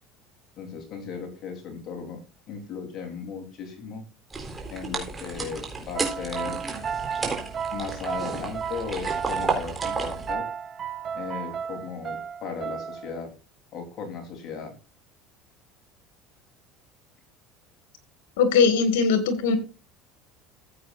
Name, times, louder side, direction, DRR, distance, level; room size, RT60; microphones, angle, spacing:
voice 1, 0.6-2.2 2.5-4.0 4.7-6.6 7.7-10.5 11.1-13.3 13.7-14.7, left 5 dB, 45° left, 4 dB, 3.8 m, -36 dB
sound 1, 4.3-10.3, right 4 dB, 20° right, 4.0 m, -32 dB
sound 2, 6.0-13.2, right 7 dB, 35° right, 0.9 m, -33 dB
voice 2, 18.4-19.6, left 5 dB, 85° left, 9 dB, 2.2 m, -20 dB
14.5 x 8.3 x 2.6 m, 0.31 s
supercardioid pair, 115°, 0 cm